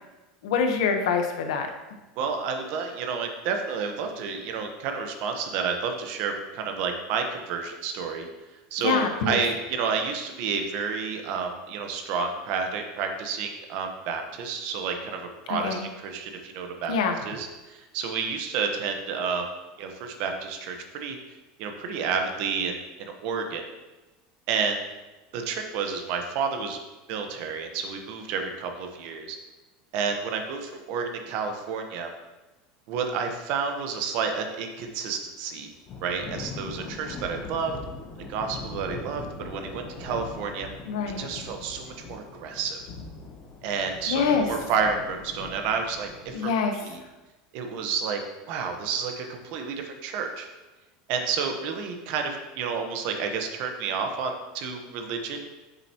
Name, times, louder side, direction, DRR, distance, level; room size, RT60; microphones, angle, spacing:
voice 1, 0.4-1.7 8.8-9.4 15.5-15.8 16.9-17.2 40.9-41.2 44.1-44.5 46.3-46.7, left 5 dB, 90° left, 5 dB, 1.1 m, -25 dB
voice 2, 2.2-8.3 8.7-16.9 17.2-19.5 19.8-21.2 21.6-23.6 24.5-24.8 25.3-26.8 27.1-29.4 29.9-32.1 32.9-35.7 36.0-37.7 38.3-40.7 41.2-42.8 43.6-47.0 47.5-48.2 48.5-50.5 51.1-55.4, right 5 dB, 50° right, 4 dB, 1.0 m, -30 dB
Thunder / Rain, 35.9-46.4, left 4 dB, 30° left, 0.9 m, -41 dB
8.9 x 6.7 x 2.9 m, 1.1 s
supercardioid pair, 165°, 3 cm